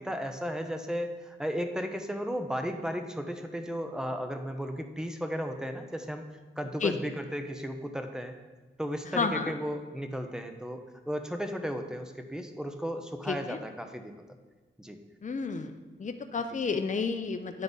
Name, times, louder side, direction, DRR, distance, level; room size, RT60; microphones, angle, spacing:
voice 1, 0.0-6.3 6.6-8.4 8.8-14.1 14.8-15.0 16.5-16.6, equal, 5° right, 6 dB, 0.8 m, -35 dB
voice 2, 9.1-9.5 13.3-13.6 15.2-15.7 16.0-17.6, left 5 dB, 40° left, 7 dB, 0.6 m, -31 dB
9.5 x 3.8 x 5.4 m, 1.3 s
wide cardioid pair, 75°, 20 cm